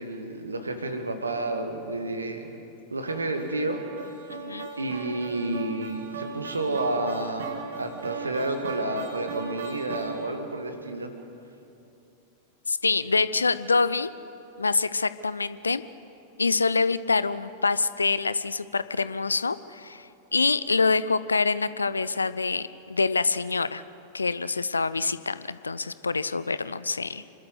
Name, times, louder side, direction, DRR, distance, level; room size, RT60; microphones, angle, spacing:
voice 1, 0.0-2.5 2.9-4.2 4.8-11.1, right 2 dB, 75° right, 6 dB, 1.9 m, -30 dB
sound 1, 3.1-10.5, right 6 dB, 60° right, 2.3 m, -38 dB
voice 2, 4.3-4.7 12.7-14.1 14.6-15.8 16.4-20.1 20.3-23.8 24.1-27.2, left 4 dB, 75° left, 16 dB, 0.6 m, -26 dB
27.0 x 12.5 x 8.1 m, 2.7 s
figure-of-eight pair, 90°, 0 cm